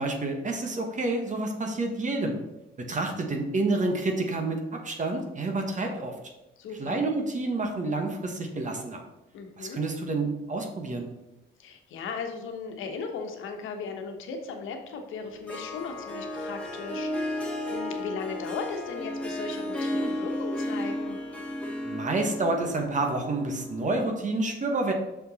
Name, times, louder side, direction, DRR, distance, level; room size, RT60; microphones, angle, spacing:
voice 1, 0.0-2.4 2.9-6.1 6.8-9.0 9.6-11.1 21.8-24.9, right 2 dB, 40° right, 3 dB, 1.2 m, -29 dB
voice 2, 6.6-7.0 9.3-9.8 11.6-21.2, left 5 dB, 85° left, 4 dB, 1.2 m, -37 dB
Harp, 15.2-24.2, left 1 dB, 5° left, 1.9 m, -34 dB
6.2 x 5.4 x 4.1 m, 0.97 s
cardioid pair, 90°, 20 cm